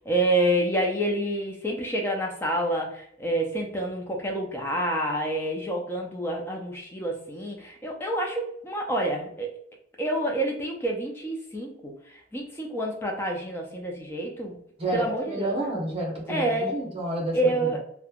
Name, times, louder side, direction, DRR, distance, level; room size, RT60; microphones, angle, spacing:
voice 1, 0.0-9.5 10.0-14.6 14.9-15.7 16.3-16.8 17.3-17.8, right 1 dB, 10° left, 0 dB, 0.5 m, -28 dB
voice 2, 14.8-17.7, right 1 dB, 30° right, -3 dB, 0.9 m, -30 dB
3.1 x 2.1 x 2.3 m, 0.69 s
head